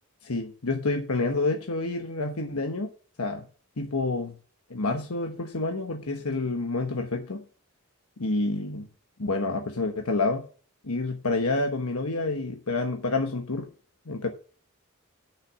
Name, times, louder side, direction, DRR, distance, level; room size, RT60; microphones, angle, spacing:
voice 1, 0.2-2.9 3.2-3.4 3.8-4.3 4.7-7.4 8.2-8.9 9.2-10.4 10.8-13.7 14.1-14.3, left 3 dB, 75° left, 1.2 m, -28 dB
9.0 x 6.7 x 6.0 m
head